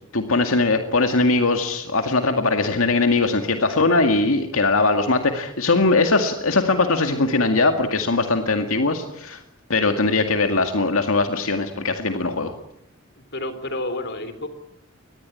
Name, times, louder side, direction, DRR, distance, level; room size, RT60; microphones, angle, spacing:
voice 1, 0.1-9.4 9.7-12.5, left 3 dB, 85° left, 6 dB, 2.1 m, -20 dB
voice 2, 13.3-14.5, left 1 dB, 55° left, 11 dB, 3.7 m, -29 dB
24.0 x 20.0 x 9.9 m, 0.77 s
head